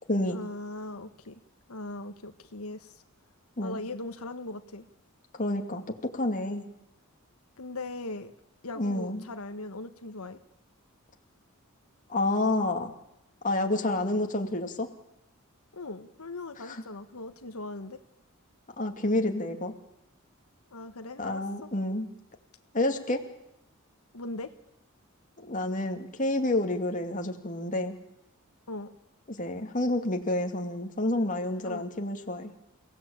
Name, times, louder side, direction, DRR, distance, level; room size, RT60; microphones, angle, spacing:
voice 1, 0.3-1.4 1.7-3.0 3.6-4.9 7.6-8.3 8.6-10.4 15.7-18.0 20.7-21.7 22.9-23.0 24.1-24.5 28.7-28.9 31.6-31.9, left 2 dB, 85° left, 8 dB, 1.4 m, -39 dB
voice 2, 5.4-6.7 8.8-9.2 12.1-12.9 13.4-14.9 16.6-16.8 18.8-19.7 21.2-22.1 22.7-23.2 25.4-27.9 29.3-32.5, left 1 dB, 35° left, 4 dB, 2.4 m, -29 dB
29.5 x 16.5 x 8.7 m, 0.82 s
head